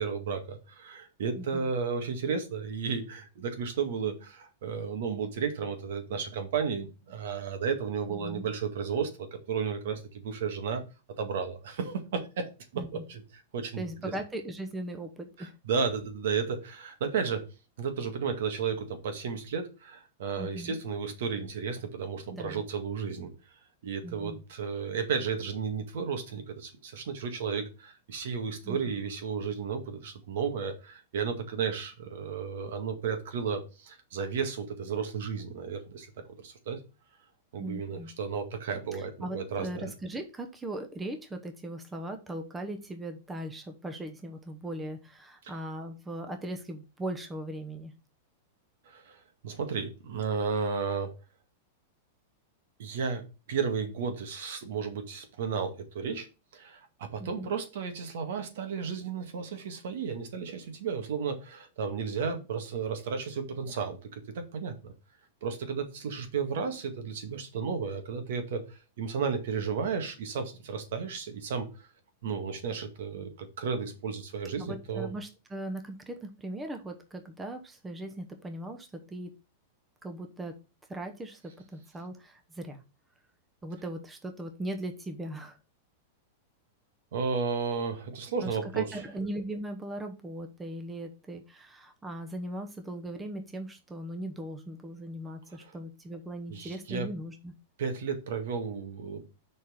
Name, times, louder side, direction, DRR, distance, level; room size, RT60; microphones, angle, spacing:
voice 1, 0.0-10.8 11.2-14.1 15.4-17.4 17.8-23.3 23.8-36.1 36.4-36.8 37.5-39.9 45.4-45.5 48.9-51.1 52.8-56.3 56.5-64.9 65.4-71.9 72.2-75.1 87.1-89.0 96.5-97.1 97.8-99.2, right 6 dB, 70° right, 7 dB, 1.9 m, -33 dB
voice 2, 1.4-1.7 8.1-8.4 12.8-13.0 13.8-15.5 20.4-20.8 22.3-22.7 24.0-24.4 28.6-28.8 37.6-38.1 38.9-47.9 57.2-57.5 74.6-79.3 80.0-80.5 80.9-81.4 81.7-82.8 83.6-85.6 88.4-97.5, right 1 dB, 10° right, 5 dB, 0.9 m, -39 dB
6.3 x 4.3 x 6.3 m, 0.30 s
supercardioid pair, 155°, 0 cm